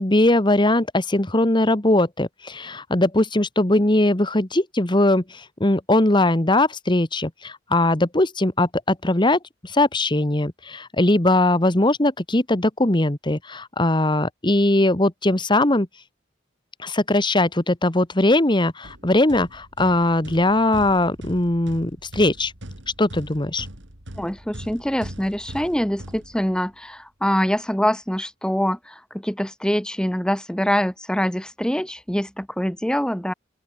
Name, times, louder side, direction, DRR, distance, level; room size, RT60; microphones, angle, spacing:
voice 1, 0.0-15.9 16.8-22.5 23.0-23.7, left 1 dB, 25° left, 1.5 m, -20 dB
sound 1, 18.8-26.8, right 1 dB, 65° right, 4.6 m, -41 dB
voice 2, 24.1-33.3, equal, 5° left, 1.4 m, -24 dB
open air
head